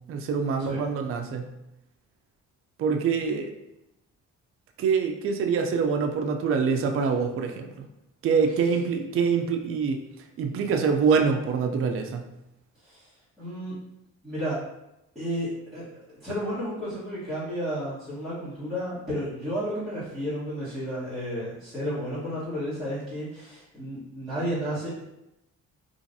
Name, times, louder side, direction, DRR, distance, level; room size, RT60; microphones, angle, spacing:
voice 1, 0.1-1.5 2.8-3.5 4.8-7.7 8.2-10.0 10.4-12.3, right 5 dB, 45° right, 4 dB, 0.4 m, -25 dB
voice 2, 12.8-13.1 13.4-13.7 14.2-14.6 15.1-24.9, equal, ahead, -14 dB, 1.3 m, -32 dB
3.0 x 2.5 x 2.6 m, 0.88 s
cardioid pair, 90°, 30 cm